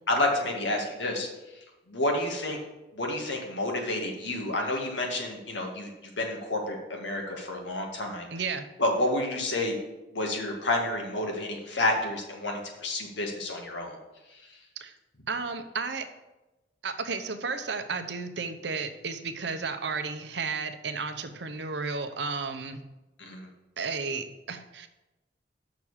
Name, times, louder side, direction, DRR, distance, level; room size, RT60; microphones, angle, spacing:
voice 1, 0.1-1.3 1.9-2.6 2.9-5.9 6.2-8.3 8.8-9.8 10.1-14.0 23.2-23.4, left 1 dB, 75° left, 1 dB, 1.9 m, -29 dB
voice 2, 8.3-8.7 14.8-14.9 15.3-16.1 16.8-22.8 23.8-24.9, right 4 dB, 65° right, 9 dB, 0.8 m, -33 dB
6.5 x 5.9 x 7.2 m, 1.0 s
head